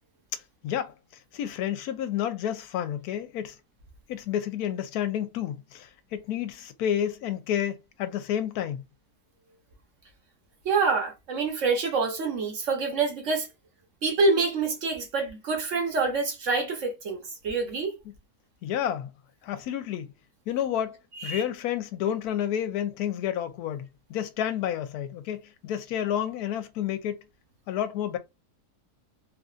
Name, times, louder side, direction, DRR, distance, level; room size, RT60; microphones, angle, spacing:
voice 1, 0.3-0.9 1.3-3.6 4.1-8.8 18.6-19.1 19.4-20.1 20.5-23.8 24.1-27.2 27.7-28.2, left 10 dB, 75° left, 1.0 m, -30 dB
voice 2, 10.6-13.5 14.0-17.9 21.2-21.4, right 4 dB, 55° right, 1.1 m, -26 dB
3.1 x 2.5 x 2.4 m
omnidirectional pair, 1.7 m